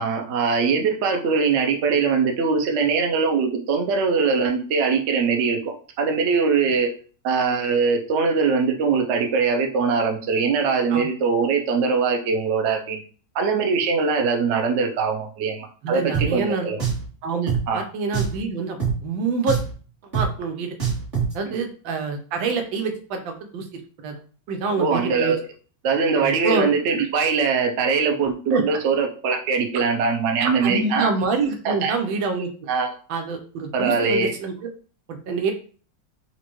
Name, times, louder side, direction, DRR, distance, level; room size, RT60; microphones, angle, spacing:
voice 1, 0.0-5.6 6.0-6.9 7.2-13.0 13.3-16.8 17.7-17.8 21.5-21.6 24.8-25.4 25.8-31.1 31.6-31.9 32.7-32.9 33.7-34.3, right 5 dB, 60° right, 3 dB, 0.7 m, -22 dB
voice 2, 15.8-16.7 17.2-19.6 20.1-20.8 21.3-24.2 24.5-25.3 26.2-26.7 28.5-28.6 30.4-32.5 33.1-34.5 35.1-35.5, right 4 dB, 85° right, 5 dB, 1.4 m, -26 dB
Drum, 16.1-16.3 16.8-17.1 17.5-17.6 18.1-18.4 18.8-18.9 19.5-19.7 20.1-20.3 20.8-21.3, right 6 dB, 30° right, 1.6 m, -23 dB
4.2 x 2.5 x 3.0 m, 0.40 s
omnidirectional pair, 2.1 m